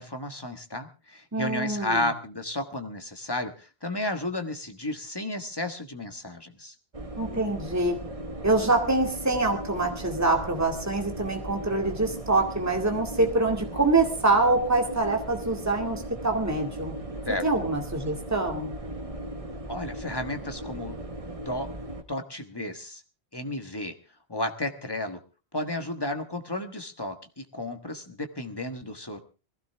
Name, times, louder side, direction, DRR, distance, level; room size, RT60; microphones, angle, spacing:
voice 1, 0.0-6.7 17.2-17.4 19.7-21.0 21.4-21.7 22.1-23.0 23.3-23.9 24.3-25.2 25.5-29.2, left 1 dB, 20° left, 6 dB, 1.5 m, -33 dB
voice 2, 1.3-2.1 7.2-8.0 8.4-16.9 17.4-18.7, right 2 dB, 15° right, 2 dB, 2.2 m, -25 dB
sound 1, 6.9-22.0, right 1 dB, 30° right, 1.3 m, -37 dB
21.0 x 16.0 x 3.5 m, 0.34 s
omnidirectional pair, 1.2 m